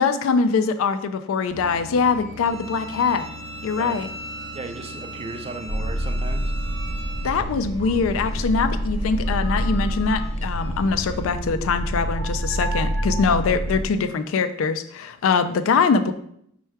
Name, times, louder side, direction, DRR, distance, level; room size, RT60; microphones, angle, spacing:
voice 1, 0.0-3.3 3.6-4.1 7.2-16.1, left 5 dB, 75° left, 10 dB, 0.3 m, -23 dB
sound 1, 1.5-11.3, equal, 90° right, 0.8 m, -41 dB
Bowed string instrument, 2.4-7.3, right 1 dB, 15° left, 0.7 m, -39 dB
voice 2, 4.5-6.4, right 3 dB, 30° right, 7 dB, 0.3 m, -35 dB
sound 2, 5.7-13.8, equal, 55° left, 0.9 m, -27 dB
4.3 x 2.2 x 4.6 m, 0.70 s
head